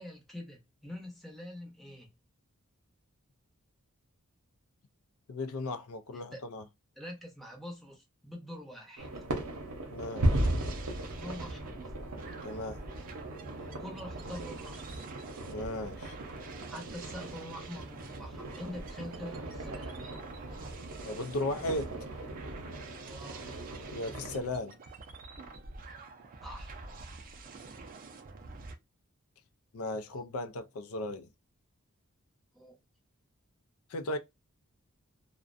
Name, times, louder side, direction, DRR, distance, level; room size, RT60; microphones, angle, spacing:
voice 1, 0.0-2.1 6.3-6.4 7.0-9.2 11.2-11.9 13.6-14.9 16.7-20.2 23.0-23.4 26.4-26.7 32.5-32.8, equal, ahead, 0.7 m, -45 dB
voice 2, 5.3-6.6 9.9-10.5 12.4-12.8 15.5-16.2 21.0-21.9 23.9-24.8 29.7-31.3 33.9-34.2, left 2 dB, 70° left, 0.4 m, -36 dB
sound 1, 9.0-24.4, right 1 dB, 80° right, 0.7 m, -37 dB
sound 2, 10.3-28.7, right 3 dB, 40° right, 0.4 m, -47 dB
2.4 x 2.1 x 2.4 m
head